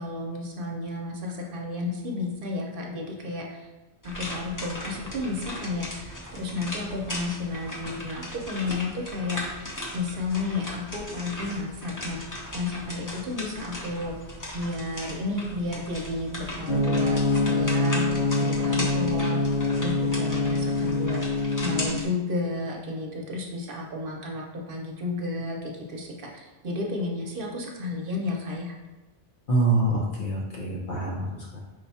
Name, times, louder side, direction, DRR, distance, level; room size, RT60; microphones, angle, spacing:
voice 1, 0.0-3.7 4.0-9.6 9.9-12.2 12.5-14.2 14.5-19.4 19.8-21.2 21.6-28.7, left 2 dB, 55° right, 0 dB, 0.9 m, -32 dB
sound 1, 4.0-22.0, left 1 dB, 20° left, 0.7 m, -37 dB
sound 2, 16.7-21.9, left 2 dB, 80° left, 1.5 m, -25 dB
voice 2, 29.5-31.6, right 2 dB, 55° left, -4 dB, 0.9 m, -25 dB
5.1 x 2.3 x 4.1 m, 1.2 s
omnidirectional pair, 1.1 m